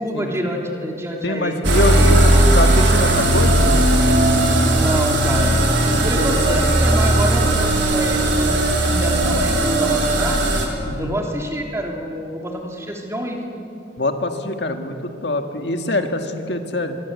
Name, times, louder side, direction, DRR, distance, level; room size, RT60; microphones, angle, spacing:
voice 1, 0.0-2.1 4.7-5.6 6.0-10.5 11.0-13.6, equal, 15° right, 1 dB, 3.3 m, -27 dB
voice 2, 1.2-3.6 4.9-5.1 5.9-6.6 10.8-11.2 14.0-17.0, left 1 dB, 60° left, 5 dB, 1.8 m, -24 dB
sound 1, 1.6-10.7, right 1 dB, 75° right, 4.3 m, -17 dB
24.5 x 24.0 x 8.3 m, 2.6 s
head